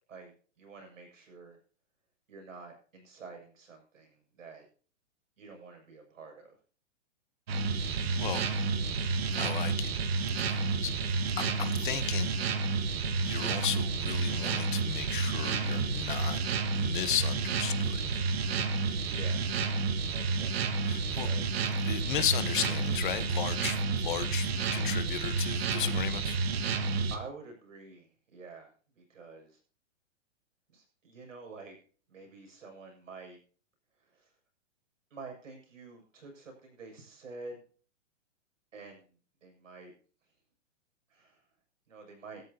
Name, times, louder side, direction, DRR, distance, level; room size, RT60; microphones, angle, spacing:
voice 1, 0.1-1.6 2.3-4.6 5.4-6.6 18.9-19.5 20.1-21.6 27.1-29.6 30.7-31.8 32.1-33.4 34.0-34.3 35.1-37.6 38.7-39.1 39.4-39.9 41.1-41.4 41.9-42.4, right 4 dB, 85° right, 4 dB, 7.3 m, -48 dB
sound 1, 7.5-27.2, right 4 dB, 55° right, 1.6 m, -30 dB
voice 2, 7.8-8.5 9.4-9.9 10.4-10.9 11.4-12.4 13.2-18.2 20.8-21.3 21.8-26.4, left 11 dB, 40° left, 12 dB, 1.2 m, -35 dB
18.0 x 13.0 x 2.9 m, 0.40 s
hypercardioid pair, 175°, 37 cm